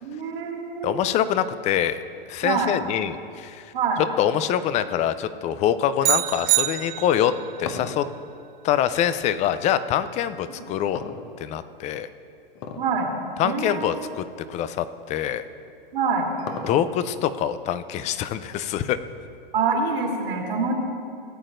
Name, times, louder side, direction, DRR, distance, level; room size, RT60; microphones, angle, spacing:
voice 1, 0.0-1.0 2.4-2.7 3.7-4.0 10.6-10.7 12.8-13.1 13.4-13.9 15.9-16.3 19.5-20.7, right 5 dB, 75° right, 0 dB, 2.5 m, -25 dB
voice 2, 0.8-2.0 2.3-3.6 4.2-7.3 7.6-8.0 8.6-11.0 11.4-12.1 13.4-14.2 14.5-15.4 16.7-19.0, left 10 dB, 25° left, 13 dB, 0.4 m, -24 dB
sound 1, 6.0-7.4, right 17 dB, 40° right, 0.5 m, -24 dB
sound 2, 7.6-9.6 10.9-11.8 12.5-13.0 13.3-13.4 14.2-14.3 15.7-17.2, left 5 dB, 45° left, 1.1 m, -36 dB
17.5 x 8.8 x 2.6 m, 2.4 s
hypercardioid pair, 115°, 29 cm